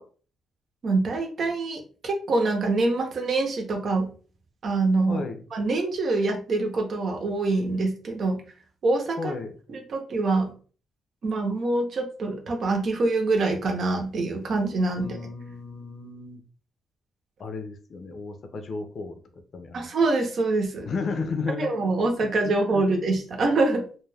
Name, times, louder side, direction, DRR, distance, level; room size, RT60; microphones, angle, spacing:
voice 1, 0.8-4.1 4.6-5.2 5.5-8.4 8.8-9.3 9.7-10.5 11.2-15.2 19.7-20.9 21.6-23.9, right 3 dB, 55° right, 3 dB, 0.7 m, -25 dB
voice 2, 5.1-5.5 9.2-9.6 15.0-16.4 17.4-19.2 19.5-19.9 20.8-21.7 22.2-22.9, left 4 dB, 55° left, 6 dB, 0.6 m, -33 dB
2.3 x 2.3 x 3.3 m, 0.40 s
cardioid pair, 90°, 0 cm